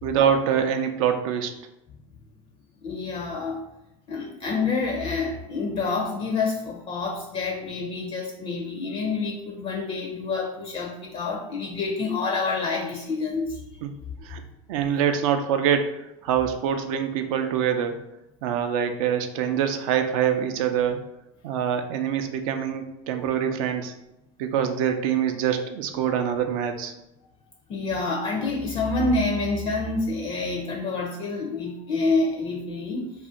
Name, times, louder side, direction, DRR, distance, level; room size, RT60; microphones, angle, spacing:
voice 1, 0.0-1.5 13.8-13.9 14.2-14.4 14.7-15.9 16.2-18.0 18.4-21.0 21.4-23.9 24.4-26.9, right 8 dB, 75° right, 7 dB, 0.4 m, -24 dB
voice 2, 2.8-3.6 4.1-13.6 27.7-33.1, left 3 dB, 35° left, 0 dB, 0.4 m, -27 dB
2.5 x 2.1 x 3.7 m, 0.89 s
supercardioid pair, 120°, 18 cm